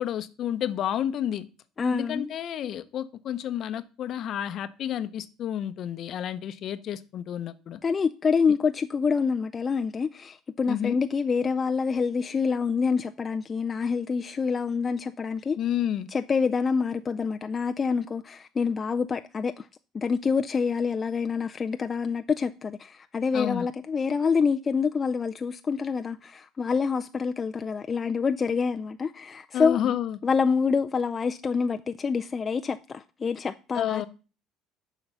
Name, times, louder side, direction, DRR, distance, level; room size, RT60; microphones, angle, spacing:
voice 1, 0.0-1.5 1.9-7.8 10.7-11.0 15.6-16.1 23.3-23.7 29.5-30.2 33.7-34.1, left 10 dB, 55° left, 0.7 m, -30 dB
voice 2, 1.8-2.3 7.8-15.6 16.1-19.7 19.9-29.8 30.2-34.1, left 5 dB, 30° left, 0.4 m, -26 dB
7.2 x 5.0 x 6.8 m
supercardioid pair, 95°, 0 cm